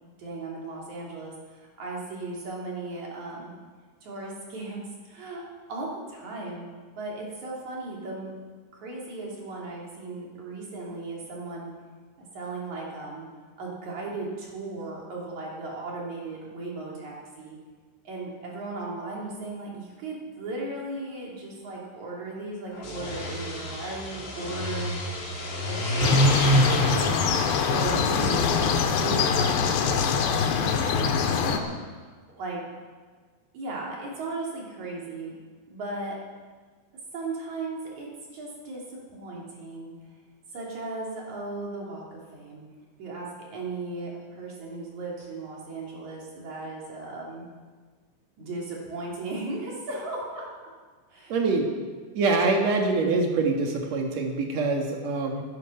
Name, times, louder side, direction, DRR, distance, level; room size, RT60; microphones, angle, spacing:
voice 1, 0.0-3.5 4.0-5.4 5.7-6.7 6.9-8.3 8.7-11.7 12.2-13.3 13.6-17.6 18.0-24.9 25.6-31.8 32.3-32.7 33.5-35.3 35.7-36.2 37.1-39.9 40.5-42.6 43.0-47.5 48.4-50.5 51.1-51.4, right 3 dB, 40° right, -3 dB, 4.0 m, -36 dB
sound 1, 22.8-29.0, equal, 40° left, 1.8 m, -27 dB
sound 2, 26.0-31.6, left 6 dB, 70° left, 3.0 m, -24 dB
voice 2, 51.3-51.7 52.1-55.4, right 3 dB, 70° right, 1 dB, 1.6 m, -24 dB
14.0 x 14.0 x 5.9 m, 1.5 s
omnidirectional pair, 5.9 m